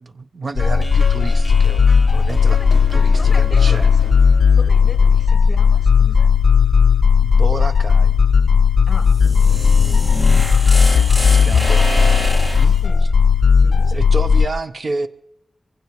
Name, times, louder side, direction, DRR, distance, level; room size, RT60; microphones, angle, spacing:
voice 1, 0.0-3.9 7.2-8.2 11.3-12.3 12.6-12.8 13.9-15.1, right 3 dB, 50° right, 0.7 m, -29 dB
sound 1, 0.6-14.5, left 6 dB, 75° left, 0.4 m, -14 dB
sound 2, 0.6-5.6, left 1 dB, 10° left, 0.8 m, -35 dB
voice 2, 3.2-4.1 4.5-6.4 8.9-9.7 12.8-13.1 13.6-14.0, left 3 dB, 35° left, 1.4 m, -38 dB
sound 3, 8.9-12.8, equal, 20° right, 2.0 m, -26 dB
23.0 x 16.0 x 3.1 m
wide cardioid pair, 140°, 0 cm